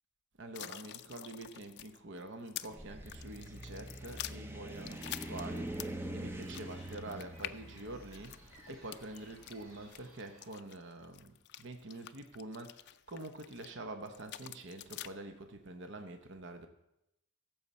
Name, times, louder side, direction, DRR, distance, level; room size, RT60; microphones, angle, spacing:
voice 1, 0.4-8.4 8.7-16.7, right 2 dB, 55° right, 6 dB, 0.8 m, -46 dB
sound 1, 0.5-2.7 3.1-6.1 6.4-13.7 14.1-15.1, left 13 dB, 50° left, 0.3 m, -47 dB
sound 2, 2.7-9.8, right 1 dB, 10° right, 0.5 m, -44 dB
sound 3, 4.9-10.5, right 1 dB, 70° right, 2.1 m, -60 dB
15.0 x 7.2 x 4.2 m, 0.85 s
head